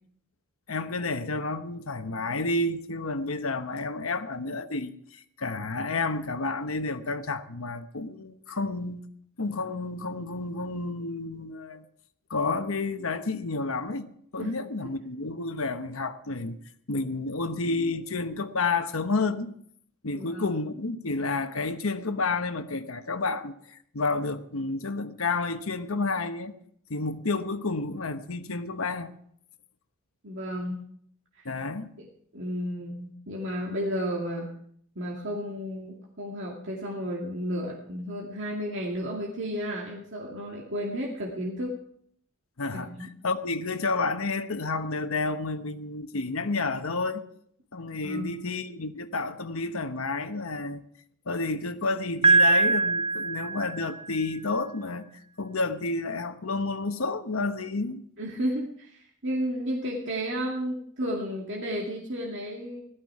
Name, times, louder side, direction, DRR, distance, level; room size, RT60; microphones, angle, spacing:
voice 1, 0.7-9.1 9.4-11.8 12.3-14.1 14.3-16.6 16.9-19.5 20.0-26.5 26.9-29.1 31.4-31.9 42.6-47.2 47.7-50.8 51.3-55.1 55.4-58.0, left 3 dB, 70° left, 1.1 m, -30 dB
voice 2, 20.1-20.6 30.2-30.8 31.4-31.5 32.0-32.1 32.3-34.5 35.0-41.8 42.7-43.1 48.0-48.4 58.2-62.8, equal, 60° right, 2.3 m, -32 dB
Piano, 52.2-54.2, right 3 dB, 25° right, 0.7 m, -22 dB
16.5 x 13.0 x 4.8 m
head